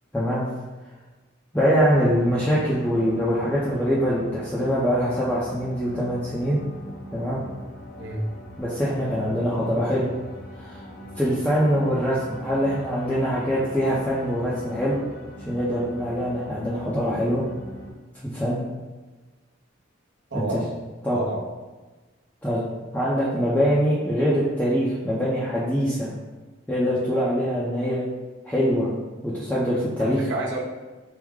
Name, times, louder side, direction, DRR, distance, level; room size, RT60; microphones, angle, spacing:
voice 1, 0.1-0.5 1.5-6.6 7.1-7.4 8.6-10.1 10.6-10.8 11.2-15.0 15.4-17.4 18.2-18.6 20.3-20.6 21.0-21.2 22.4-22.6 22.9-26.1 26.7-28.0 28.4-28.9 29.2-30.2, equal, 10° left, -9 dB, 0.5 m, -23 dB
sound 1, 1.5-17.9, left 1 dB, 50° left, 0.6 m, -41 dB
voice 2, 20.3-20.7 21.1-21.4 30.0-30.6, right 2 dB, 60° right, -3 dB, 0.7 m, -29 dB
4.7 x 2.1 x 3.6 m, 1.3 s
head